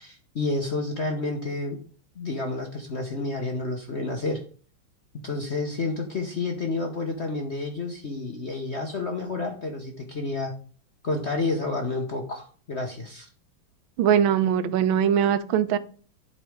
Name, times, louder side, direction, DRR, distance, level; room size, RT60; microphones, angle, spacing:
voice 1, 0.0-1.8 2.2-4.4 5.2-10.5 11.0-13.3, left 3 dB, 45° left, 3 dB, 1.0 m, -30 dB
voice 2, 14.0-15.8, right 9 dB, 85° right, 13 dB, 1.5 m, -21 dB
11.0 x 4.2 x 4.9 m, 0.42 s
omnidirectional pair, 2.2 m